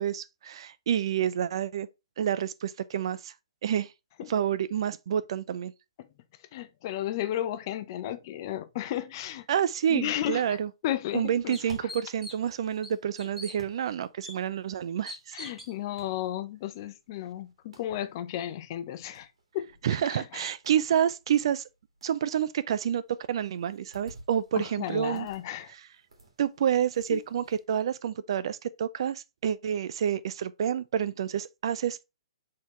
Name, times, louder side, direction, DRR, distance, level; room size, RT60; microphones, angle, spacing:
voice 1, 0.0-1.9 2.2-3.3 3.6-3.9 4.3-5.7 9.5-10.7 11.1-15.4 19.8-21.6 22.0-25.3 26.4-32.0, right 9 dB, 60° right, 0.4 m, -28 dB
voice 2, 6.5-9.5 9.9-10.6 10.8-11.6 15.3-19.3 19.5-19.7 20.1-20.5 24.5-25.7 27.1-27.2, left 12 dB, 40° left, 0.6 m, -33 dB
sound 1, 10.5-10.6 11.1-11.2 11.5-12.5 12.8-13.6 14.2-14.3 15.1-15.7, left 1 dB, 5° right, 1.2 m, -42 dB
sound 2, 11.2-27.6, right 2 dB, 80° right, 2.0 m, -56 dB
4.3 x 3.8 x 3.0 m
hypercardioid pair, 145°, 3 cm